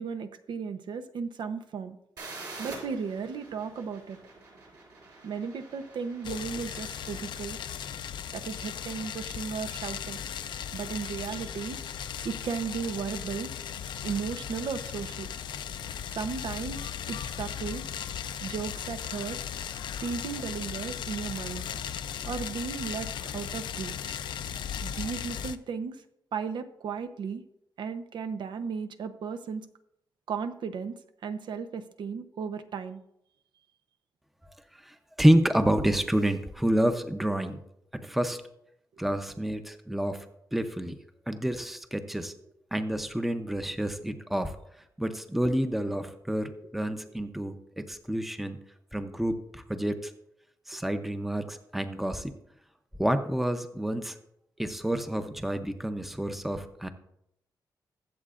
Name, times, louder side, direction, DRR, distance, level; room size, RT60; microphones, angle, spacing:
voice 1, 0.0-2.0 2.6-4.2 5.2-7.6 8.3-10.2 10.7-11.8 12.2-13.5 14.0-15.3 16.1-16.8 17.1-17.8 18.4-19.4 20.0-21.6 22.2-24.2 24.8-26.0 26.3-27.4 27.8-29.6 30.3-30.9 31.2-33.0, right 6 dB, 80° right, 9 dB, 0.8 m, -35 dB
sound 1, 2.2-7.8, right 3 dB, 60° right, 4.8 m, -47 dB
sound 2, 6.2-25.6, left 9 dB, 85° left, 0.5 m, -37 dB
voice 2, 34.9-37.6 38.0-38.4 39.0-40.2 40.5-41.0 41.3-42.3 42.7-44.5 45.0-48.6 48.9-50.1 50.7-52.3 53.0-54.2 54.6-56.9, right 1 dB, 5° right, 8 dB, 0.6 m, -28 dB
22.0 x 7.8 x 2.5 m, 0.78 s
wide cardioid pair, 175°, 8 cm